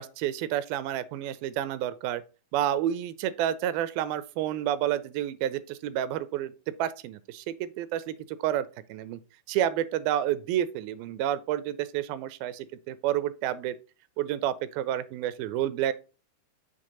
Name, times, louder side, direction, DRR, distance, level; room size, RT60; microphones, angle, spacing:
voice 1, 0.0-2.2 2.5-6.5 6.8-9.2 9.5-13.8 14.2-15.9, right 11 dB, 85° right, 2.3 m, -30 dB
6.7 x 3.1 x 5.2 m
omnidirectional pair, 4.2 m